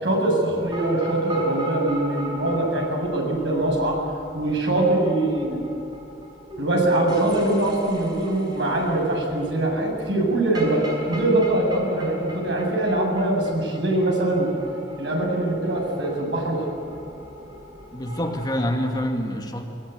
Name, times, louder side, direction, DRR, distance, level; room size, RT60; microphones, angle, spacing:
voice 1, 0.0-4.1 4.3-5.7 6.6-14.6 15.0-16.7, right 1 dB, 75° right, 0 dB, 7.8 m, -23 dB
sound 1, 0.6-19.1, right 1 dB, 25° right, 5.5 m, -39 dB
voice 2, 17.9-19.6, equal, 20° left, 2 dB, 2.4 m, -26 dB
22.5 x 22.0 x 9.7 m, 2.5 s
head